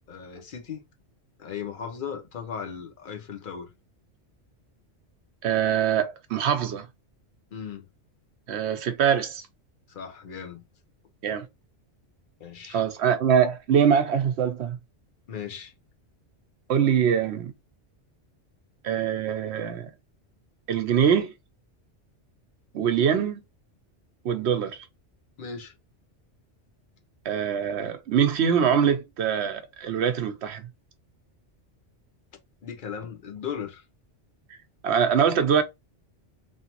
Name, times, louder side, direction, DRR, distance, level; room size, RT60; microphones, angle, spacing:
voice 1, 0.1-0.8 1.4-3.7 7.5-7.8 9.9-10.6 12.4-12.8 15.3-15.7 25.4-25.8 32.6-33.8, left 7 dB, 50° left, 0.9 m, -37 dB
voice 2, 5.4-6.9 8.5-9.4 11.2-11.5 12.7-14.8 16.7-17.5 18.8-19.9 20.7-21.3 22.7-23.4 24.2-24.9 27.2-30.7 34.8-35.6, right 8 dB, 70° right, 0.9 m, -23 dB
3.2 x 2.8 x 2.9 m
omnidirectional pair, 1.2 m